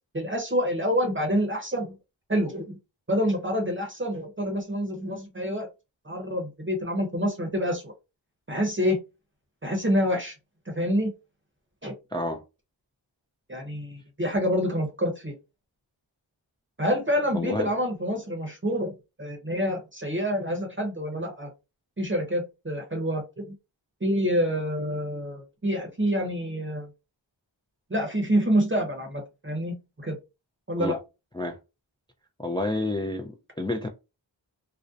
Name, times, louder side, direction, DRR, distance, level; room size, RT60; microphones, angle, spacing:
voice 1, 0.1-1.9 2.3-2.8 3.1-5.7 6.0-7.9 8.5-9.0 9.6-10.3 10.8-11.1 11.8-11.9 13.5-15.3 16.8-18.9 19.2-21.5 22.0-23.5 24.0-26.9 27.9-30.2 30.7-31.0, equal, 25° right, 0.8 m, -27 dB
voice 2, 12.1-12.4 17.3-17.7 30.8-31.0 31.3-31.6 32.4-33.9, left 1 dB, 10° left, 0.3 m, -29 dB
2.6 x 2.0 x 2.4 m
cardioid pair, 40°, 46 cm